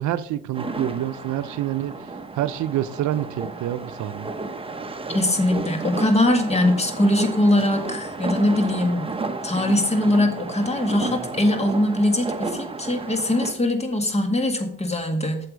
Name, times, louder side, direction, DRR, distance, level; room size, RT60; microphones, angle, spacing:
voice 1, 0.0-4.3, right 12 dB, 75° right, 0.6 m, -27 dB
sound 1, 0.5-13.5, right 3 dB, 20° right, 0.9 m, -32 dB
voice 2, 5.1-9.1 9.4-15.5, left 1 dB, 20° left, 1.8 m, -21 dB
7.9 x 7.0 x 5.1 m
cardioid pair, 90°, 30 cm